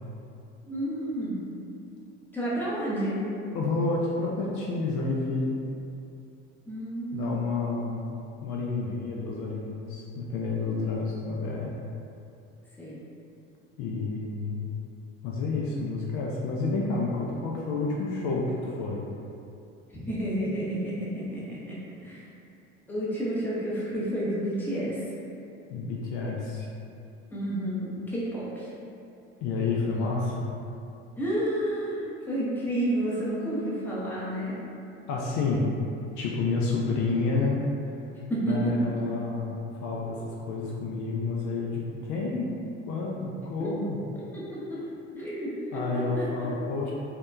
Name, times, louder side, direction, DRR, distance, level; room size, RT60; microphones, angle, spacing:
voice 1, 0.7-1.4 2.3-3.2 6.7-7.4 12.8-13.0 19.9-22.2 22.9-25.0 27.3-28.7 31.2-34.6 38.3-38.7 43.6-43.7 44.3-44.8 45.1-46.2, right 1 dB, 5° left, -8 dB, 0.7 m, -30 dB
voice 2, 3.5-5.6 7.1-8.1 8.4-11.8 13.8-14.7 15.2-19.1 25.7-26.7 29.4-30.5 35.1-35.7 36.2-38.0 38.4-39.5 39.8-42.5 42.9-44.0 45.7-46.9, left 3 dB, 55° left, -3 dB, 0.4 m, -29 dB
2.7 x 2.2 x 2.2 m, 2.6 s
hypercardioid pair, 75°, 34 cm